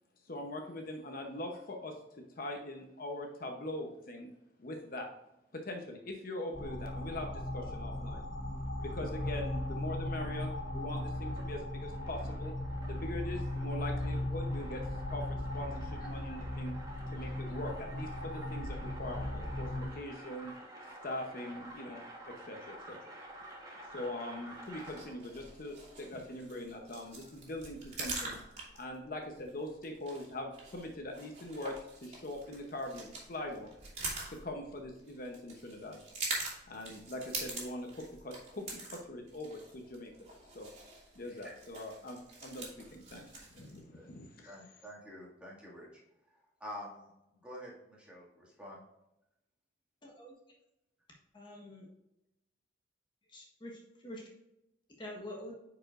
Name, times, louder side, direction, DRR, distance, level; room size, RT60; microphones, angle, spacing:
voice 1, 0.3-2.0 2.4-4.3 4.6-5.1 5.5-8.3 8.8-12.5 12.9-14.8 15.1-15.2 15.5-16.7 17.1-20.5 21.0-23.0 23.9-28.4 28.7-33.7 34.3-36.0 36.7-40.1 40.5-40.7 41.2-43.2 43.5-44.6, left 1 dB, 55° left, 3 dB, 0.9 m, -42 dB
sound 1, 6.5-19.9, left 1 dB, 75° left, 2.2 m, -37 dB
sound 2, 8.6-25.3, right 1 dB, 20° right, 1.4 m, -51 dB
sound 3, 24.6-43.8, right 3 dB, 40° right, 2.6 m, -45 dB
voice 2, 44.5-45.9 46.6-48.8, equal, 5° right, -5 dB, 2.0 m, -48 dB
voice 3, 50.0-50.4 51.3-51.9 53.3-54.3 55.0-55.5, left 1 dB, 25° left, -2 dB, 1.3 m, -46 dB
9.3 x 5.0 x 2.5 m, 0.90 s
head